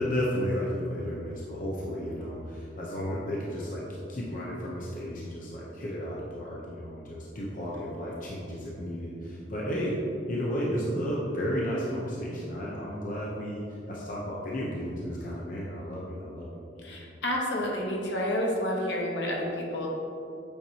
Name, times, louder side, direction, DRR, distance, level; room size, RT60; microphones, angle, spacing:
voice 1, 0.0-16.5 16.8-16.9, equal, 50° left, -4 dB, 0.8 m, -33 dB
voice 2, 16.8-19.9, left 1 dB, 75° left, -2 dB, 1.2 m, -29 dB
8.5 x 4.5 x 2.9 m, 2.5 s
head